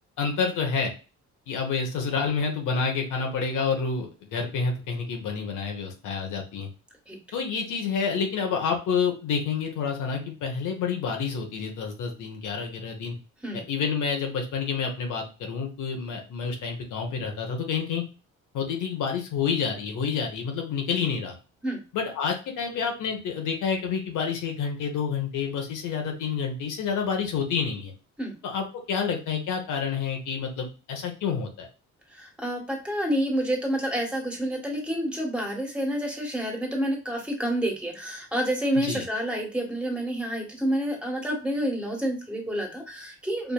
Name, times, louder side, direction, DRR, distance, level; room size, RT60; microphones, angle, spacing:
voice 1, 0.2-0.9 1.5-6.7 7.3-13.1 13.5-18.0 18.5-21.4 21.9-27.9 28.4-31.7 38.8-39.0, left 6 dB, 80° left, 2 dB, 1.1 m, -28 dB
voice 2, 32.1-43.5, equal, 5° right, 0 dB, 1.6 m, -28 dB
5.0 x 2.6 x 2.4 m, 0.33 s
cardioid pair, 90°, 30 cm